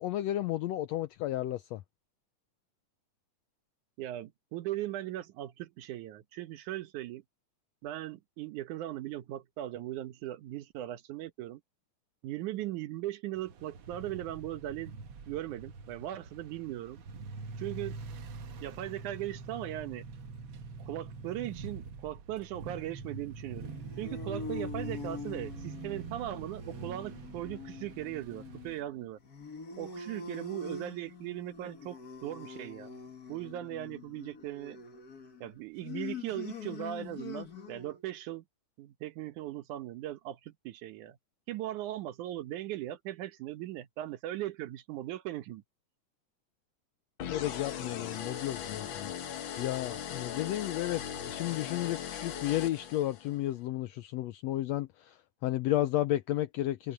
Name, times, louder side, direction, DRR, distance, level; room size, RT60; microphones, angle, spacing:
voice 1, 0.0-1.8 47.3-49.1 49.6-56.9, left 14 dB, 80° left, 1.5 m, -33 dB
voice 2, 4.0-7.2 7.8-11.6 12.2-14.9 15.3-17.0 17.6-18.0 18.6-20.1 20.8-23.7 24.0-29.2 29.8-33.0 33.3-34.8 35.4-38.4 38.8-41.2 41.5-45.6, right 14 dB, 75° right, 2.4 m, -39 dB
sound 1, 13.4-28.8, right 4 dB, 55° right, 1.6 m, -44 dB
sound 2, 23.5-38.0, left 4 dB, 40° left, 1.6 m, -44 dB
sound 3, 47.2-53.4, left 8 dB, 60° left, 1.3 m, -39 dB
omnidirectional pair, 3.6 m